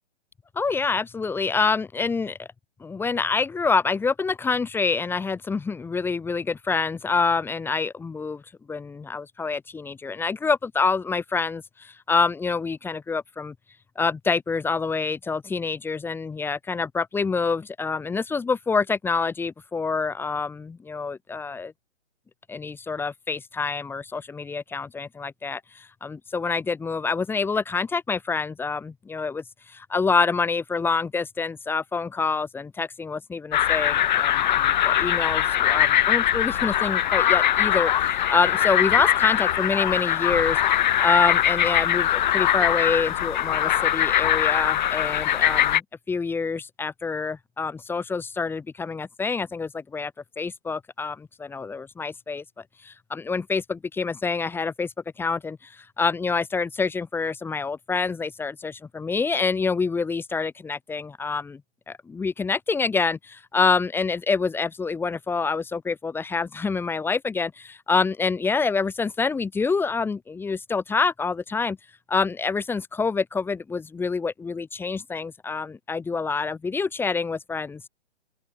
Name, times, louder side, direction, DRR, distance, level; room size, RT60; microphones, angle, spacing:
voice 1, 0.5-2.5 2.8-8.4 8.7-13.5 14.0-21.7 22.5-52.4 52.8-61.6 61.9-71.8 72.1-77.9, left 4 dB, 5° left, 2.9 m, -27 dB
sound 1, 33.5-45.8, left 11 dB, 40° left, 4.7 m, -22 dB
open air
figure-of-eight pair, 135°, 35 cm